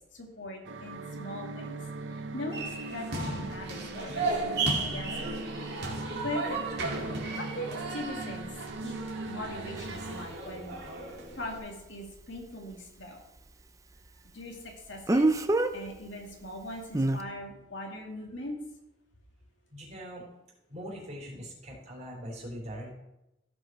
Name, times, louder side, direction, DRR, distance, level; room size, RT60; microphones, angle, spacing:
voice 1, 0.1-1.8 2.1-5.4 6.2-6.6 7.2-9.0 9.3-10.8 11.4-13.2 14.3-15.3 15.7-18.6, left 1 dB, 75° left, 1 dB, 2.2 m, -40 dB
sound 1, 0.6-10.3, right 2 dB, 80° right, 0.7 m, -40 dB
sound 2, 2.5-11.6, right 3 dB, 60° right, 2.6 m, -35 dB
Speech, 9.8-9.9 15.1-15.7 16.9-17.2, right 2 dB, 15° right, 0.5 m, -24 dB
voice 2, 19.7-20.3 20.7-22.9, equal, 40° right, -4 dB, 4.1 m, -41 dB
15.5 x 5.4 x 4.6 m, 0.91 s
head